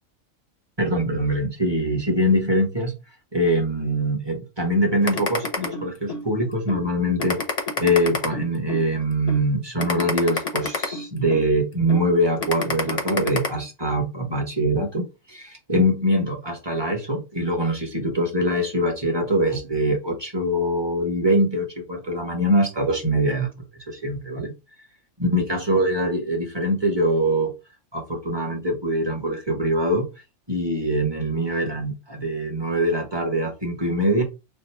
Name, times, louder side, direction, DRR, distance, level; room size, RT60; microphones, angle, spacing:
voice 1, 0.8-2.9 3.3-7.4 7.8-23.5 23.9-24.5 25.2-27.5 27.9-30.1 30.5-34.2, equal, 20° right, 1.2 m, -23 dB
sound 1, 5.1-6.2 6.7-6.8 7.2-8.8 9.3-9.4 9.8-11.4 11.9-12.0 12.4-13.5, left 3 dB, 35° left, 0.8 m, -27 dB
3.4 x 2.5 x 4.3 m
omnidirectional pair, 1.4 m